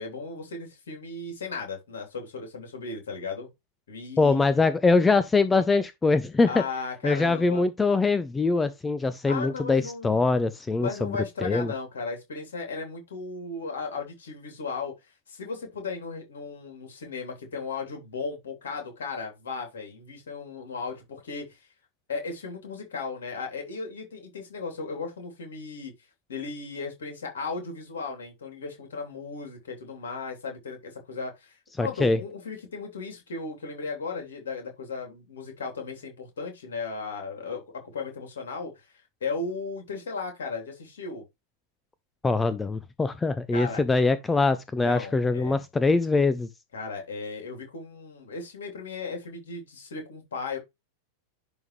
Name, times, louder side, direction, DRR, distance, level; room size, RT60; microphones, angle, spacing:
voice 1, 0.0-3.5 3.9-4.4 6.4-7.7 9.3-10.2 10.8-14.9 15.3-21.6 22.1-25.9 26.3-38.9 39.2-41.2 43.5-43.8 44.8-45.6 46.7-50.6, left 4 dB, 65° left, 3.0 m, -36 dB
voice 2, 4.2-6.5 7.0-11.7 31.8-32.2 42.2-46.5, left 3 dB, 10° left, 0.5 m, -23 dB
11.0 x 3.6 x 3.2 m
figure-of-eight pair, 90°, 0 cm